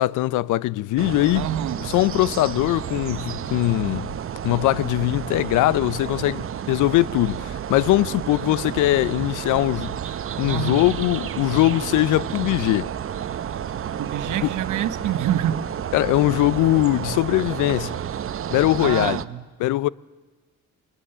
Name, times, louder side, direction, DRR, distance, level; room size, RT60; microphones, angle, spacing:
voice 1, 0.0-1.5 1.8-4.2 4.4-10.0 10.4-12.9 14.4-14.5 15.9-18.0 18.5-19.2 19.6-19.9, left 16 dB, 85° left, 0.5 m, -21 dB
sound 1, 1.0-19.2, right 9 dB, 45° right, 0.7 m, -31 dB
voice 2, 1.3-1.9 10.5-10.9 14.0-15.6 18.8-19.4, right 11 dB, 80° right, 1.1 m, -27 dB
22.5 x 20.0 x 6.7 m
cardioid pair, 90°, 30 cm